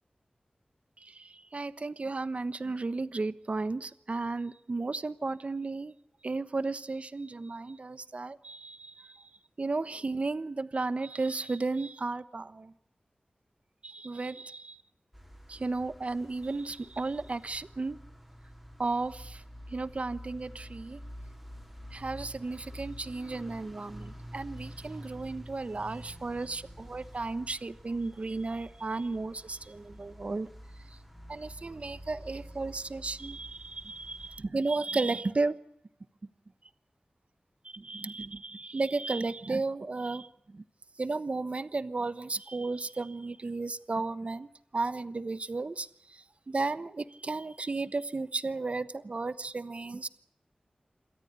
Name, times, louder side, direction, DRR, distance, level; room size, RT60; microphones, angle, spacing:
voice 1, 1.0-5.9 6.2-9.3 9.6-12.7 13.8-14.8 15.5-18.0 18.8-19.4 19.7-21.0 21.9-30.5 31.3-35.6 37.6-40.6 41.0-50.1, right 3 dB, 50° right, 14 dB, 1.1 m, -34 dB
sound 1, 15.1-34.4, equal, ahead, 5.3 m, -48 dB
27.0 x 14.0 x 9.7 m, 0.78 s
wide cardioid pair, 80°, 3 cm